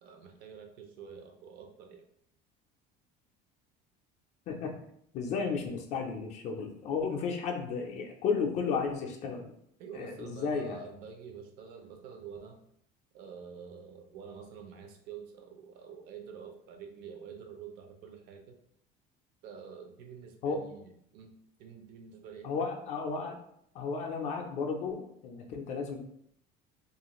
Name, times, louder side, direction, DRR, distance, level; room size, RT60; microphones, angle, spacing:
voice 1, 0.0-2.0 9.8-12.6 13.1-18.6 19.4-21.3 21.6-22.7, right 6 dB, 55° right, 4 dB, 0.4 m, -47 dB
voice 2, 5.1-9.5 9.9-10.8 20.4-20.6 22.4-23.4 23.7-26.0, left 5 dB, 40° left, 2 dB, 0.4 m, -33 dB
2.4 x 2.4 x 2.9 m, 0.71 s
cardioid pair, 180°, 19 cm